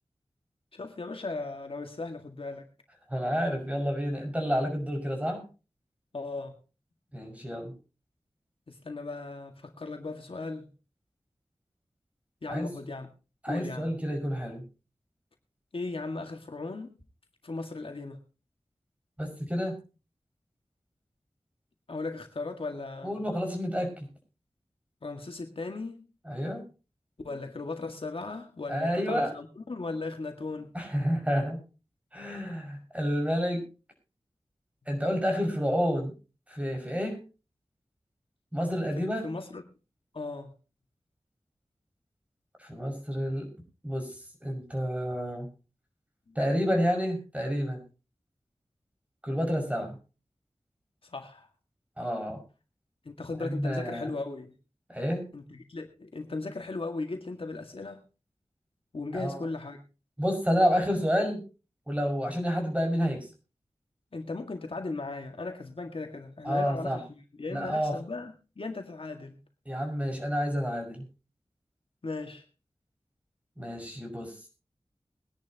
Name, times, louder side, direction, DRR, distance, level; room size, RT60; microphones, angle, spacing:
voice 1, 0.7-2.7 6.1-6.6 8.7-10.7 12.4-13.1 13.5-13.9 15.7-17.0 17.4-18.2 21.9-23.2 25.0-26.1 27.2-30.7 39.0-39.6 40.1-40.5 46.3-46.4 51.0-51.5 53.1-54.5 55.3-58.0 58.9-59.8 64.1-69.4 72.0-72.4, left 3 dB, 65° left, 1.9 m, -37 dB
voice 2, 3.1-5.4 7.1-7.7 12.5-12.7 13.4-14.6 19.2-19.7 23.0-24.1 26.2-26.6 28.7-29.3 30.7-31.6 32.1-33.6 34.9-36.1 36.5-37.2 38.5-39.3 42.6-43.5 43.8-44.1 44.4-45.5 46.4-47.8 49.2-50.0 52.0-52.4 53.4-54.1 54.9-55.2 59.1-59.4 60.2-61.4 61.9-63.3 66.4-67.0 67.5-67.9 69.7-71.0 73.6-74.3, equal, 15° right, 5.7 m, -29 dB
22.5 x 10.5 x 2.9 m
wide cardioid pair, 75°, 10 cm